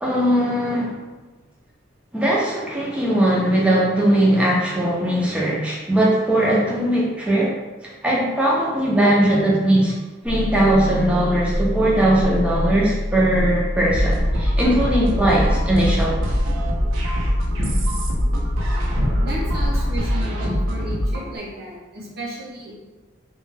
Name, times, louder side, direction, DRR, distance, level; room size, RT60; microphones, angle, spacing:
voice 1, 0.0-1.0 2.1-7.5 7.8-10.0 10.2-16.2, right 1 dB, 5° right, -5 dB, 0.5 m, -19 dB
sound 1, 10.2-20.0, left 1 dB, 70° left, 0.6 m, -26 dB
sound 2, 13.9-21.3, equal, 90° right, 0.5 m, -24 dB
voice 2, 19.0-22.7, equal, 50° right, -4 dB, 0.7 m, -32 dB
2.2 x 2.2 x 3.1 m, 1.2 s
head